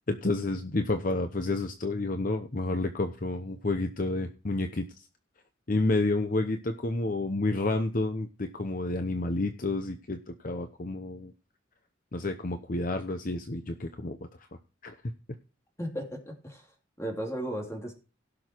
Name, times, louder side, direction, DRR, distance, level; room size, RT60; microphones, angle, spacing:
voice 1, 0.1-5.1 5.7-11.3 12.1-14.5 14.8-14.9, left 2 dB, 45° left, 7 dB, 0.8 m, -30 dB
voice 2, 15.8-16.7 17.0-17.9, right 1 dB, 15° left, 1 dB, 2.9 m, -35 dB
16.5 x 6.3 x 4.5 m, 0.33 s
head